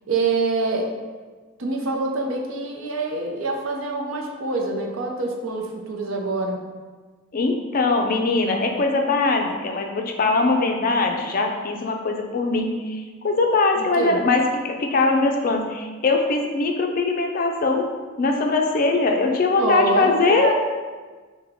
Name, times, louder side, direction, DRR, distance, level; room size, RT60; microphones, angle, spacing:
voice 1, 0.1-0.9 1.6-6.6 13.8-14.2 19.6-20.5, right 3 dB, 70° right, 1 dB, 0.6 m, -25 dB
voice 2, 7.3-17.9 18.2-20.5, left 3 dB, 40° left, 3 dB, 0.4 m, -21 dB
5.7 x 2.2 x 3.4 m, 1.4 s
head